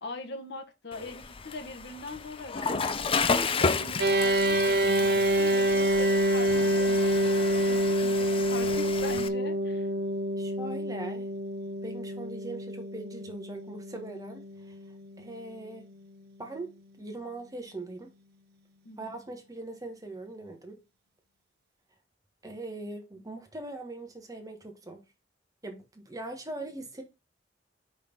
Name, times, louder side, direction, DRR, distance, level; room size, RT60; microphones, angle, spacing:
voice 1, 0.0-7.1 7.4-9.9 18.8-19.2, left 2 dB, 65° left, 1.2 m, -41 dB
Water / Toilet flush, 0.9-9.3, left 4 dB, 30° left, 0.5 m, -32 dB
sound 1, 4.0-15.5, right 1 dB, 60° right, 0.7 m, -27 dB
voice 2, 10.4-11.3 11.8-14.4 15.2-15.9 16.4-18.1 19.0-20.8 22.4-25.0 25.6-27.0, right 2 dB, 20° right, 1.4 m, -41 dB
5.3 x 4.2 x 5.3 m
head